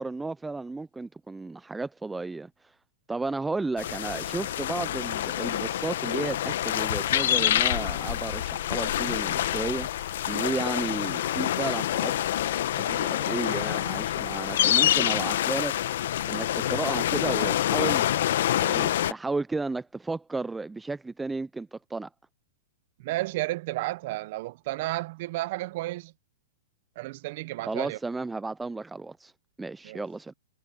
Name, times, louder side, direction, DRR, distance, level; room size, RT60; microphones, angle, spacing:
voice 1, 0.0-2.7 3.1-12.1 12.8-15.7 16.3-18.1 18.6-22.1 27.6-29.3 29.6-30.3, right 3 dB, 10° right, 0.6 m, -33 dB
sound 1, 3.8-19.1, left 12 dB, 70° left, 1.1 m, -27 dB
voice 2, 23.0-26.1 27.0-28.0 29.8-30.0, right 18 dB, 55° right, 1.0 m, -32 dB
hypercardioid pair, 130°, 0 cm